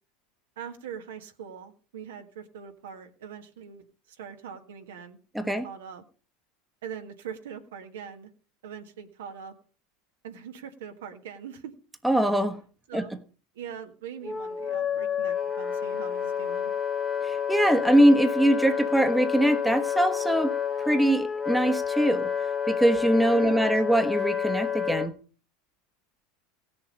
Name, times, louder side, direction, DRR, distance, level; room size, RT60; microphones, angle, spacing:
voice 1, 0.6-6.0 6.8-8.3 8.6-9.5 10.2-11.7 12.9-13.1 13.5-16.7 23.3-23.7, right 7 dB, 80° right, 5 dB, 1.6 m, -42 dB
voice 2, 5.3-5.7 12.0-12.6 12.9-13.1 17.2-22.3 22.7-25.1, right 1 dB, 5° right, 8 dB, 1.2 m, -22 dB
Wind instrument woodwind instrument, 14.2-25.1, left 7 dB, 25° left, 1.3 m, -29 dB
16.5 x 6.9 x 5.3 m, 0.39 s
hypercardioid pair, 90°, 0 cm